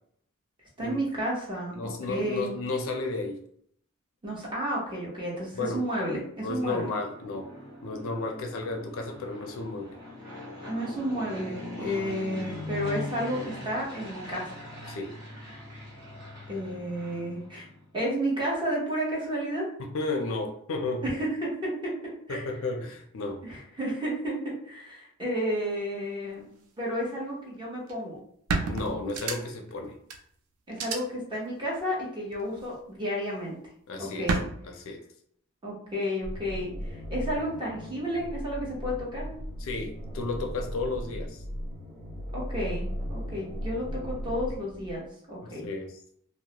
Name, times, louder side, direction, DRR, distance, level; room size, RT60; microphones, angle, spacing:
voice 1, 0.8-2.5 4.2-6.9 10.7-14.7 16.5-17.7 17.9-19.7 21.0-21.9 22.3-22.5 23.4-26.5 26.8-28.2 30.7-33.6 34.0-34.4 35.6-39.4 42.3-45.0 45.3-45.7, equal, 20° right, -4 dB, 0.8 m, -32 dB
voice 2, 1.7-3.4 5.5-5.8 6.4-7.5 7.8-10.0 11.8-12.1 14.9-15.1 19.8-21.0 22.3-23.4 28.7-29.9 33.9-34.4 34.6-35.0 39.6-41.4 45.4-45.9, left 3 dB, 60° left, 3 dB, 0.4 m, -33 dB
Fixed-wing aircraft airplane, 6.8-17.8, left 2 dB, 50° right, 1.2 m, -41 dB
sound 1, 27.9-28.0 28.5-29.7 30.1-30.2 30.7-31.0 32.3-32.8 34.3-34.4, right 4 dB, 85° right, 0.4 m, -29 dB
sound 2, 36.2-45.1, equal, 15° left, 0.8 m, -37 dB
2.2 x 2.0 x 2.8 m, 0.66 s
head